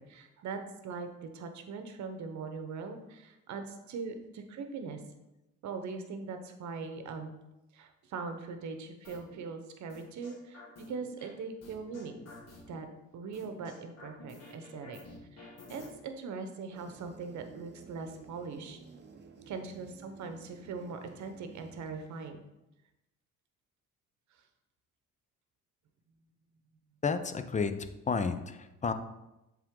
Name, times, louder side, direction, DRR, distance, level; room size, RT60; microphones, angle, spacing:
voice 1, 0.0-5.0 5.6-7.3 7.7-12.1 12.7-12.9 13.1-15.0 15.3-18.8 19.5-22.4, right 4 dB, 70° right, 7 dB, 0.9 m, -41 dB
sound 1, 9.0-9.4 9.9-11.3 11.6-12.8 13.3-15.9, left 3 dB, 55° left, 1.9 m, -50 dB
sound 2, 16.7-22.3, right 4 dB, 35° right, 0.8 m, -54 dB
voice 2, 27.0-27.7 28.1-28.9, left 5 dB, 25° left, 10 dB, 0.5 m, -31 dB
7.4 x 3.7 x 3.7 m, 0.95 s
cardioid pair, 90°, 30 cm